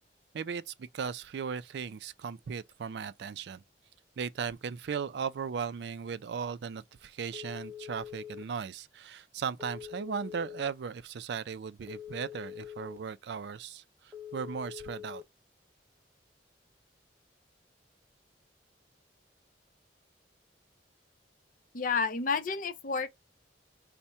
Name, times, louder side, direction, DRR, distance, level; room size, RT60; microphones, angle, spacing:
voice 1, 0.3-3.6 4.2-15.2, right 6 dB, 65° right, 0.4 m, -37 dB
Telephone, 7.3-8.4 9.6-10.7 11.9-13.0 14.1-15.2, left 9 dB, 10° right, 0.6 m, -44 dB
voice 2, 21.7-23.1, left 5 dB, 50° left, 0.6 m, -30 dB
4.2 x 2.1 x 3.4 m
head